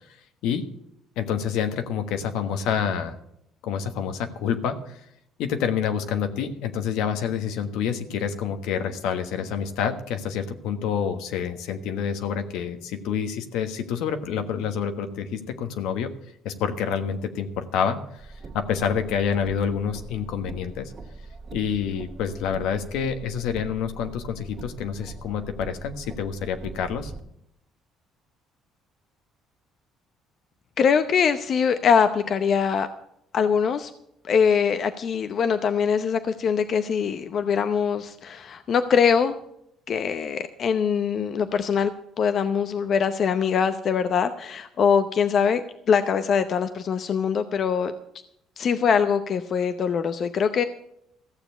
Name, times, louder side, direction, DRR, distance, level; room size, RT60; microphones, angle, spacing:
voice 1, 1.2-3.2 3.6-5.0 5.4-16.1 16.4-18.0 18.5-20.9 21.5-27.1, left 7 dB, 80° left, 8 dB, 1.3 m, -27 dB
Car, 18.2-27.2, right 3 dB, 45° right, 1.9 m, -41 dB
voice 2, 30.8-32.9 33.3-33.9 34.2-39.3 39.9-47.9 48.6-50.6, left 6 dB, 50° left, 10 dB, 0.7 m, -23 dB
15.0 x 7.0 x 8.0 m, 0.77 s
supercardioid pair, 85°, 0 cm